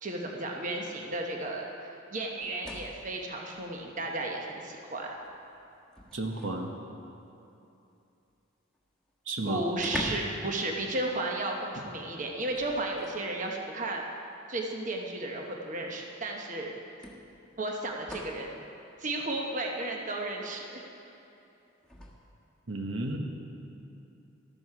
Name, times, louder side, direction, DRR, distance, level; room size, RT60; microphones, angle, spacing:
voice 1, 0.0-5.1 9.5-14.0 14.5-16.8 17.6-18.5 19.0-20.9, right 2 dB, 40° right, 1 dB, 1.0 m, -34 dB
sound 1, 2.4-3.1 4.5-4.6 5.1-6.7 8.7-8.8 9.1-9.2 9.7-10.5 10.8-11.0 12.5-13.3 14.4-14.5 16.0-16.1 17.0-18.5 21.8-22.1, left 1 dB, 5° left, 1.3 m, -41 dB
voice 2, 6.1-6.7 9.3-9.6 11.8-11.9 22.7-23.2, right 2 dB, 70° right, 3 dB, 1.1 m, -33 dB
13.0 x 12.0 x 4.8 m, 2.8 s
head